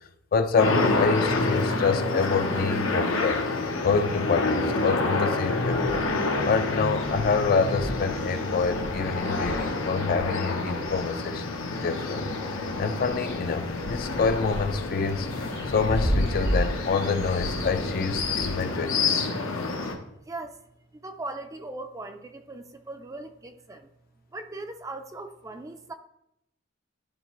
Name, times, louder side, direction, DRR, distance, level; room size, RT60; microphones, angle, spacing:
voice 1, 0.3-3.4 3.8-6.1 6.4-11.5 11.8-19.3, left 5 dB, 45° left, 9 dB, 0.4 m, -27 dB
sound 1, 0.6-19.9, left 3 dB, 85° left, 0.9 m, -28 dB
sound 2, 5.8-6.3 6.7-6.8 7.0-11.0 11.5-12.4 12.7-18.5, equal, 90° right, 2.3 m, -34 dB
voice 2, 20.3-20.6 20.9-23.9 24.3-25.9, right 2 dB, 15° right, 7 dB, 0.4 m, -39 dB
11.5 x 4.1 x 3.0 m, 0.82 s
head